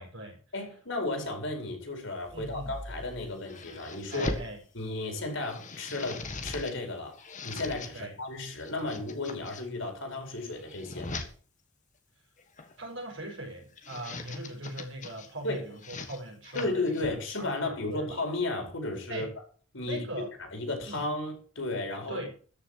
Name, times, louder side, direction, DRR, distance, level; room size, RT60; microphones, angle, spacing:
voice 1, 0.0-0.4 2.3-2.7 4.1-4.6 7.9-8.1 12.8-17.0 17.4-18.2 19.1-19.3 19.8-20.3 20.9-21.0 22.1-22.3, right 1 dB, 65° right, 1 dB, 6.2 m, -40 dB
voice 2, 0.5-4.3 4.7-7.2 7.4-11.3 15.4-15.6 16.5-19.3 19.7-20.0 20.4-22.2, left 2 dB, 65° left, 3 dB, 5.0 m, -34 dB
sound 1, 2.2-4.5 5.0-6.8 7.1-7.9 8.5-9.6 10.2-11.3 12.4-12.8 13.6-15.3 15.7-17.6, left 3 dB, 35° left, 1.7 m, -41 dB
14.0 x 6.7 x 7.6 m, 0.42 s
head